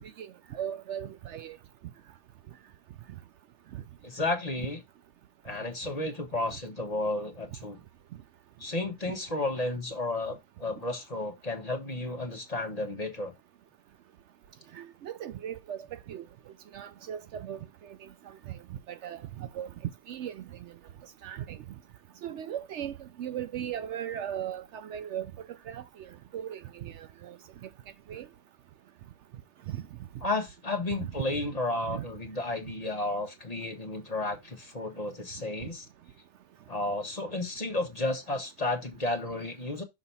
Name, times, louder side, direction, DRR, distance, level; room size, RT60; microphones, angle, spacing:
voice 1, 0.2-1.6 14.7-16.2 16.7-17.6 18.5-18.6 18.9-19.7 20.1-20.4 21.2-21.6 22.2-25.3 25.7-27.4 28.1-28.3 29.7-29.8 31.9-32.0, right 10 dB, 70° right, 0.8 m, -38 dB
voice 2, 4.0-4.8 5.4-7.8 8.6-13.3 30.2-35.9 36.7-39.8, left 2 dB, 30° left, 1.1 m, -32 dB
6.2 x 2.9 x 5.4 m
omnidirectional pair, 1.3 m